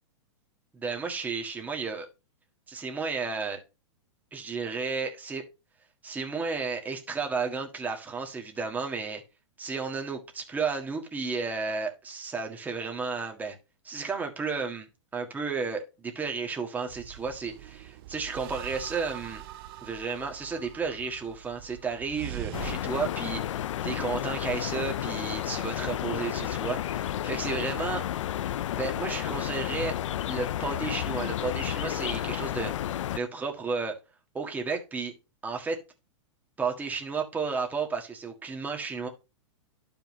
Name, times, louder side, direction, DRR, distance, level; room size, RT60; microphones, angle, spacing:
voice 1, 0.7-2.1 2.7-3.6 4.3-5.4 6.0-9.2 9.6-13.5 13.8-14.9 15.1-19.4 19.8-28.0 28.8-30.0 30.3-32.7 33.1-34.0 34.3-35.1 35.4-35.8 36.6-39.1, right 4 dB, 10° right, 2 dB, 1.6 m, -33 dB
sound 1, 16.9-22.7, right 13 dB, 50° right, 0.7 m, -42 dB
sound 2, 22.5-33.2, left 11 dB, 80° left, 0.4 m, -32 dB
11.5 x 5.4 x 3.1 m, 0.28 s
hypercardioid pair, 145°, 16 cm